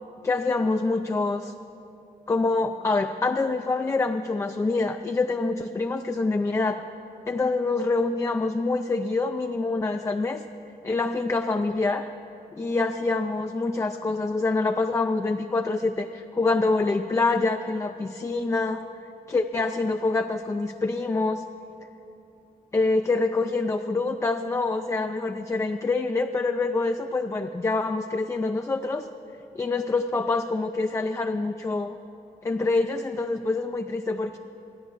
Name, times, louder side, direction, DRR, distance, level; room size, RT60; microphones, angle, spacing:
voice 1, 0.2-1.5 2.3-6.8 7.3-10.4 10.8-12.1 12.5-18.9 19.3-21.4 22.7-29.1 29.6-32.0 32.4-34.4, left 3 dB, 20° left, 6 dB, 0.4 m, -26 dB
13.0 x 9.2 x 6.9 m, 2.9 s
cardioid pair, 95°, 16 cm